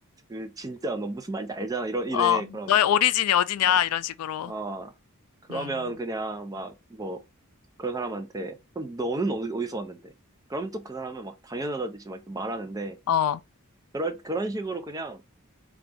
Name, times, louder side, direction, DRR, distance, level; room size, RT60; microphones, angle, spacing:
voice 1, 0.3-2.8 3.6-3.8 4.4-4.9 5.5-7.2 7.8-10.1 10.5-13.0 13.9-15.2, right 2 dB, 15° right, 0.5 m, -32 dB
voice 2, 2.7-4.5 5.5-5.9 13.1-13.4, left 10 dB, 85° left, 0.3 m, -23 dB
3.9 x 2.3 x 3.4 m
head